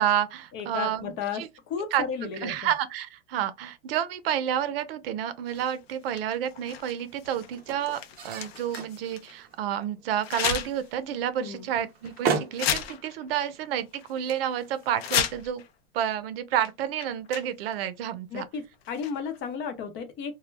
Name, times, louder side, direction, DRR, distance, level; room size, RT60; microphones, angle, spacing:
voice 1, 0.0-1.5 1.9-2.0 2.4-15.6 15.9-18.4, right 10 dB, 70° right, 0.6 m, -30 dB
voice 2, 0.5-2.6 11.4-11.7 18.3-20.4, left 6 dB, 40° left, 0.6 m, -34 dB
sound 1, 5.3-15.7, right 6 dB, 30° right, 0.6 m, -38 dB
sound 2, 5.5-9.3 10.2-10.9 11.3-11.4 12.0-12.2 12.5-13.3 13.5-13.6 13.9-14.4 14.8-15.7 16.5-16.7 17.0-17.8 18.8-19.4, left 9 dB, 85° left, 0.6 m, -33 dB
2.2 x 2.1 x 3.2 m
supercardioid pair, 130°, 30 cm